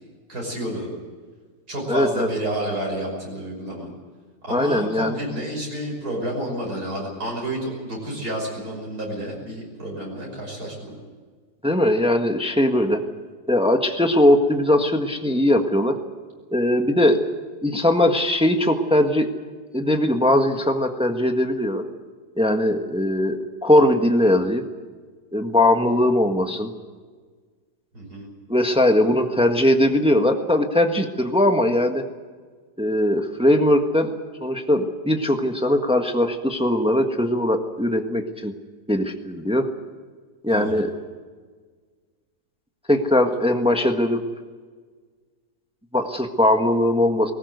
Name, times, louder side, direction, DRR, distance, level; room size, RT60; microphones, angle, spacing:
voice 1, 0.3-0.9 1.7-3.9 4.4-11.0 27.9-28.3 40.5-40.8, right 1 dB, 65° right, -2 dB, 6.3 m, -30 dB
voice 2, 1.9-2.3 4.5-5.2 11.6-13.0 13.5-15.9 16.5-17.2 17.6-19.3 19.7-21.8 22.4-24.6 25.3-26.7 28.5-32.0 32.8-34.1 34.4-38.5 38.9-39.7 40.4-40.9 42.9-44.2 45.9-47.3, left 1 dB, 5° right, 5 dB, 1.4 m, -20 dB
20.5 x 19.0 x 8.1 m, 1.5 s
omnidirectional pair, 1.8 m